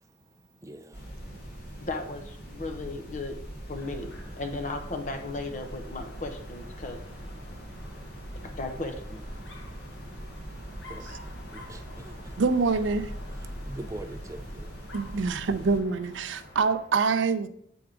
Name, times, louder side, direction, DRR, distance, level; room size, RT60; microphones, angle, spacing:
voice 1, 0.6-1.0 10.9-11.0 11.5-12.3 13.7-14.7, right 1 dB, 15° right, 0.4 m, -42 dB
sound 1, 0.9-15.8, equal, 55° left, 1.7 m, -42 dB
voice 2, 1.9-3.4 3.7-4.1 4.4-7.0 8.6-9.2, left 2 dB, 40° left, 0.7 m, -35 dB
Dog, 3.6-16.9, equal, 75° left, 1.2 m, -46 dB
voice 3, 12.4-13.1 14.9-17.5, right 4 dB, 80° right, 0.5 m, -25 dB
7.8 x 3.5 x 4.9 m
head